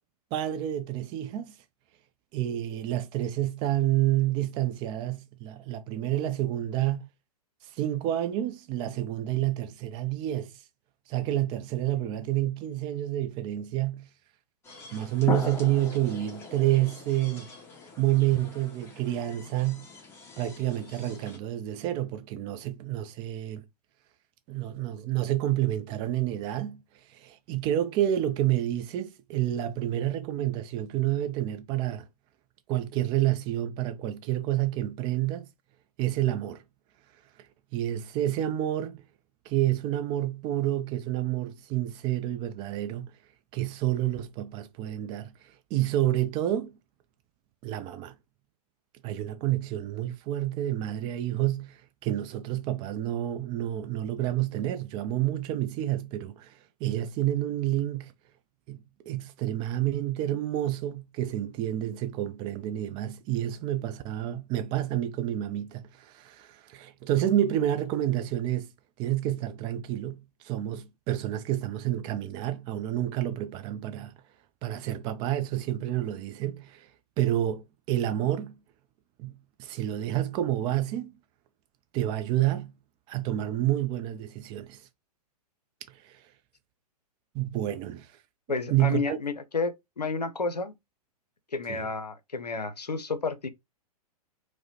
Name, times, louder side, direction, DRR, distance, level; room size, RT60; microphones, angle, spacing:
voice 1, 0.3-1.5 2.3-7.1 7.7-10.5 11.1-14.1 14.9-17.5 18.0-19.9 20.4-23.6 24.5-26.8 27.1-32.1 32.7-35.5 36.0-36.6 37.7-39.0 39.5-43.1 43.5-45.3 45.7-46.7 47.6-48.1 49.0-58.1 58.7-58.8 59.1-68.7 69.0-74.1 74.6-76.9 77.2-78.5 79.2-81.1 81.9-82.7 83.1-84.8 86.0-86.2 87.3-88.1 88.7-89.2 91.7-91.9, right 13 dB, 25° right, 0.4 m, -29 dB
sound 1, 14.6-21.4, left 4 dB, 10° left, 1.2 m, -40 dB
voice 2, 88.5-90.7 91.5-93.5, left 4 dB, 85° left, 0.6 m, -31 dB
4.7 x 2.1 x 2.7 m
figure-of-eight pair, 110°, 20 cm